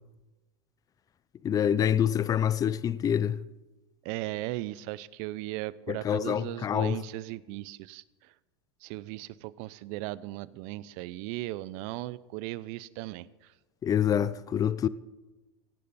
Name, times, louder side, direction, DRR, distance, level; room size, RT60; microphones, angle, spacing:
voice 1, 1.4-3.4 5.9-7.0 13.8-14.9, left 9 dB, 25° left, 0.6 m, -26 dB
voice 2, 4.0-8.0 8.8-13.3, right 17 dB, 55° right, 0.7 m, -37 dB
17.5 x 15.5 x 4.3 m
hypercardioid pair, 105°, 14 cm